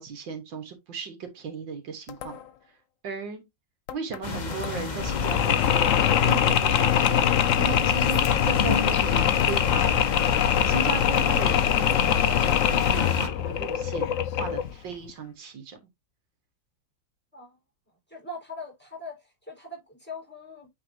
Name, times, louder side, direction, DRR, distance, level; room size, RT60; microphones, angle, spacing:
voice 1, 0.0-2.4 3.0-3.4 3.9-7.3 7.6-10.0 10.6-15.8, right 4 dB, 80° right, 2.1 m, -36 dB
sound 1, 2.1-2.7 3.9-5.1 6.3-7.5 8.7-10.0 11.2-12.4, left 10 dB, 80° left, 1.5 m, -42 dB
sound 2, 4.2-13.3, left 3 dB, 30° left, 1.0 m, -31 dB
Mechanisms, 5.0-14.8, left 10 dB, 65° left, 0.8 m, -23 dB
voice 2, 18.1-20.7, left 2 dB, 5° left, 4.5 m, -41 dB
9.0 x 4.1 x 2.8 m
omnidirectional pair, 2.0 m